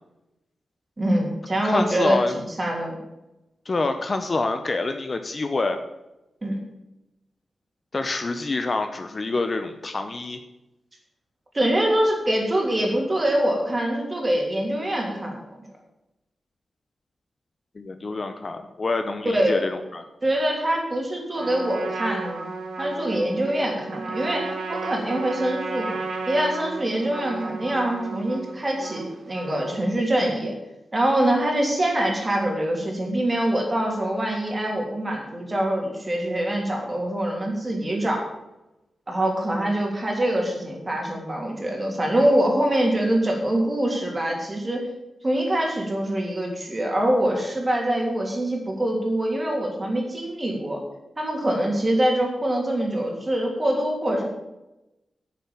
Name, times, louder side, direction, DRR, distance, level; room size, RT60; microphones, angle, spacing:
voice 1, 1.0-2.2 2.6-3.0 6.4-6.6 11.5-15.4 19.2-19.6 20.2-22.4 22.8-26.0 26.3-30.5 30.9-38.3 39.1-44.9 45.2-50.8 51.2-54.2, right 1 dB, 20° right, 0 dB, 3.1 m, -24 dB
voice 2, 1.6-2.4 3.7-5.8 7.9-10.4 17.7-20.0, left 3 dB, 35° left, 7 dB, 0.8 m, -27 dB
Trumpet, 21.3-30.0, right 3 dB, 75° right, 2.7 m, -34 dB
9.3 x 6.9 x 8.7 m, 0.96 s
wide cardioid pair, 135°, 0 cm